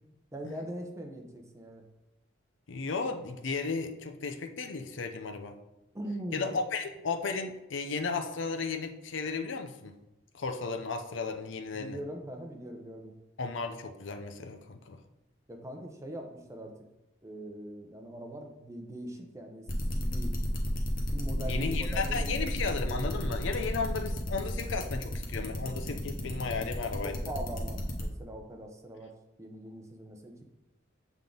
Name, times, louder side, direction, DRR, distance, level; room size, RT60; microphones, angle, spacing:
voice 1, 0.3-1.8 5.9-6.5 11.7-13.1 15.5-16.7 17.2-19.7 19.9-20.3 21.1-22.3 27.0-29.1 29.4-30.4, right 1 dB, 15° right, 2 dB, 0.7 m, -41 dB
voice 2, 2.7-5.6 6.3-10.0 10.3-12.0 13.4-15.0 21.4-27.3, left 4 dB, 70° left, 5 dB, 0.6 m, -34 dB
sound 1, 19.7-28.0, left 1 dB, 45° left, 1.0 m, -34 dB
7.2 x 3.6 x 3.8 m, 0.95 s
head